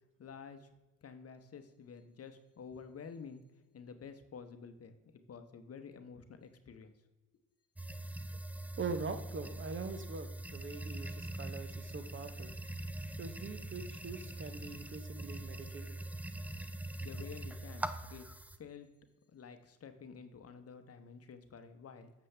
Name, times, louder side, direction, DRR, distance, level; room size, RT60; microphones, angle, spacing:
voice 1, 0.2-0.7 1.0-3.4 3.7-6.9 17.0-18.3 18.6-18.9 19.3-22.1, left 6 dB, 40° left, 9 dB, 0.9 m, -50 dB
sound 1, 7.8-18.6, right 1 dB, 5° right, 0.4 m, -43 dB
voice 2, 8.8-12.5 13.2-16.0, right 4 dB, 35° right, 9 dB, 0.9 m, -43 dB
7.5 x 6.9 x 3.3 m, 1.0 s
supercardioid pair, 65°, 35 cm